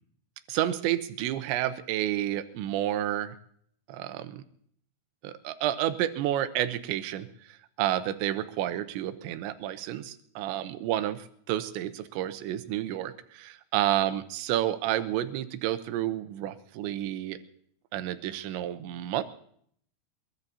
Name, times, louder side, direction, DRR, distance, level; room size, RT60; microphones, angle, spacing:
voice 1, 0.5-3.4 3.9-4.4 5.2-17.4 17.9-19.2, right 12 dB, 85° right, 10 dB, 3.1 m, -30 dB
22.5 x 22.0 x 2.8 m, 0.65 s
omnidirectional pair, 5.2 m